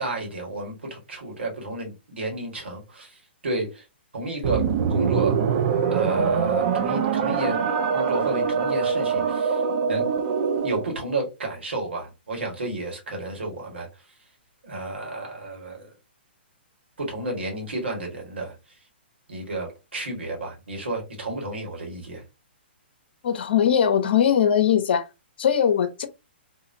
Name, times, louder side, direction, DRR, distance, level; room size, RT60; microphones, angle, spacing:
voice 1, 0.0-3.8 4.1-5.4 5.9-7.6 7.9-9.6 9.9-10.1 10.6-13.9 14.6-15.9 17.0-18.5 19.3-22.2, right 2 dB, 85° right, 1.6 m, -31 dB
sound 1, 4.4-10.9, right 6 dB, 50° right, 0.5 m, -23 dB
voice 2, 23.2-25.1 25.4-26.1, left 8 dB, 65° left, 0.5 m, -20 dB
2.8 x 2.5 x 2.6 m
hypercardioid pair, 130°, 6 cm